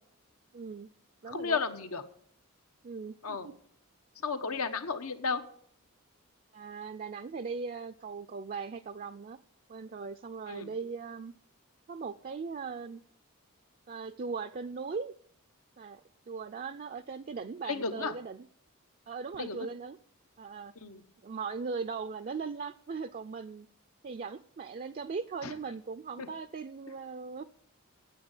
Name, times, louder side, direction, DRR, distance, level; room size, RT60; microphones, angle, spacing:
voice 1, 0.5-0.9 1.2-1.6 2.8-3.5 6.5-9.4 9.7-11.3 11.9-13.0 13.9-15.1 15.8-18.5 19.1-20.0 20.4-20.7 21.2-23.7 24.0-27.4, right 5 dB, 40° right, 8 dB, 0.4 m, -39 dB
voice 2, 1.3-2.0 3.2-3.5 4.2-5.4 10.5-10.7 17.7-18.1 19.4-19.7 20.8-21.0 25.4-25.5 26.2-26.3, left 5 dB, 80° left, 9 dB, 1.1 m, -33 dB
9.4 x 8.2 x 9.0 m, 0.63 s
head